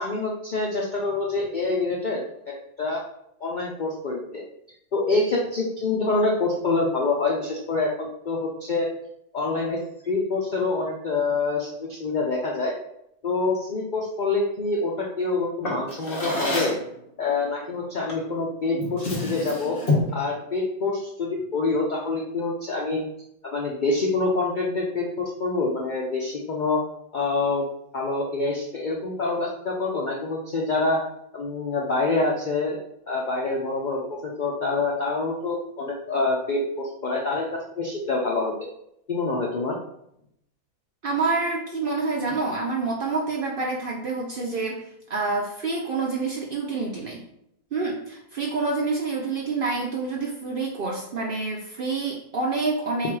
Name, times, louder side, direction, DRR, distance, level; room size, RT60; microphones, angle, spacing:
voice 1, 0.0-2.2 2.8-3.0 3.4-4.4 4.9-8.9 9.3-9.8 10.0-12.7 13.2-16.7 17.2-19.8 20.1-23.0 23.4-26.8 27.1-27.6 27.9-31.0 31.3-32.8 33.1-38.5 39.1-39.8, left 3 dB, 85° left, -2 dB, 0.4 m, -26 dB
Drawer open or close, 15.6-16.9 18.1-18.3 18.7-20.2, left 2 dB, 40° left, 1.1 m, -27 dB
voice 2, 41.0-47.2 47.7-53.1, right 3 dB, 70° right, -2 dB, 0.5 m, -27 dB
3.6 x 2.4 x 4.6 m, 0.76 s
omnidirectional pair, 1.6 m